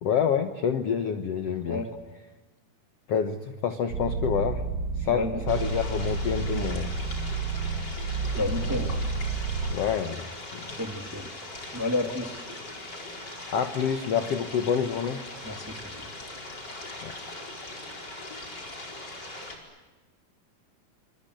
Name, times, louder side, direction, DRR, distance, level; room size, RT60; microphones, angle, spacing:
voice 1, 0.0-1.8 3.1-4.6 5.0-6.9 8.7-9.0 9.7-10.7 13.5-15.2 17.0-17.1, left 7 dB, 65° left, 8 dB, 1.6 m, -28 dB
voice 2, 1.6-2.0 5.1-5.4 8.3-8.9 10.7-11.3 11.7-12.3 15.4-16.0, left 2 dB, 5° right, 4 dB, 1.5 m, -31 dB
sound 1, 3.9-9.8, right 4 dB, 50° right, 1.5 m, -30 dB
sound 2, 5.5-19.6, left 2 dB, 25° left, 5.0 m, -40 dB
27.0 x 25.5 x 8.0 m, 1.2 s
omnidirectional pair, 4.4 m